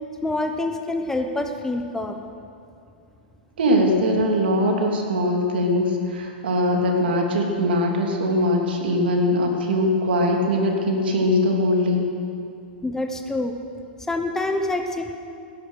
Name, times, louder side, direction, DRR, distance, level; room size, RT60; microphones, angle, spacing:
voice 1, 0.2-2.2 12.8-13.6 14.1-15.2, left 2 dB, 10° left, 5 dB, 1.0 m, -26 dB
voice 2, 3.6-12.1, left 1 dB, 75° right, 1 dB, 3.1 m, -21 dB
18.5 x 10.5 x 6.4 m, 2.5 s
hypercardioid pair, 120°, 5 cm